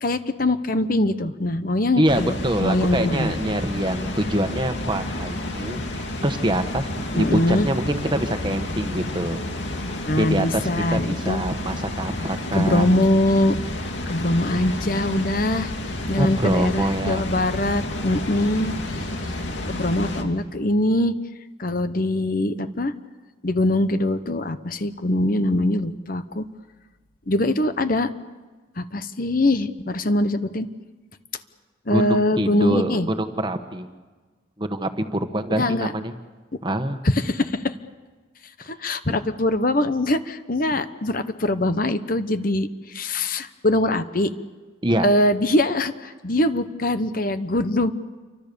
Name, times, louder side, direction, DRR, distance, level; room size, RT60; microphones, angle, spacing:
voice 1, 0.0-2.3 2.6-3.4 7.2-7.7 10.1-11.4 12.5-13.6 14.1-15.7 16.1-18.7 19.2-19.3 19.7-21.1 21.6-22.9 23.4-26.4 27.3-28.1 28.8-30.7 31.9-33.1 35.5-35.9 37.0-37.7 38.6-44.3 45.0-47.9, left 1 dB, 45° left, 11 dB, 1.1 m, -22 dB
voice 2, 2.0-9.4 10.2-12.9 16.2-17.2 31.9-33.9 34.6-36.1 36.6-37.0 39.1-39.2 44.8-45.1, right 1 dB, 25° right, 7 dB, 1.4 m, -25 dB
Water, 2.1-20.2, left 1 dB, 65° left, 2.7 m, -30 dB
29.0 x 24.5 x 7.0 m, 1.3 s
head